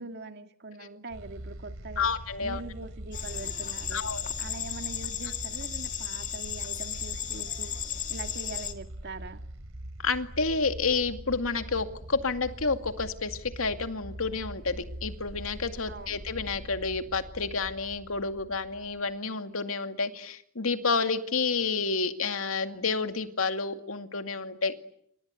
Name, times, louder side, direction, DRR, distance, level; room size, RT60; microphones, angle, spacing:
voice 1, 0.0-2.1 2.4-4.1 4.4-7.7 8.1-9.5 15.9-16.2, right 3 dB, 55° right, 1.9 m, -42 dB
sound 1, 1.1-19.2, right 1 dB, 80° right, 3.2 m, -43 dB
voice 2, 2.0-2.6 3.9-4.3 10.0-24.7, left 4 dB, 80° left, 2.3 m, -30 dB
sound 2, 3.1-8.7, left 9 dB, 40° left, 2.2 m, -35 dB
28.5 x 25.0 x 8.2 m
head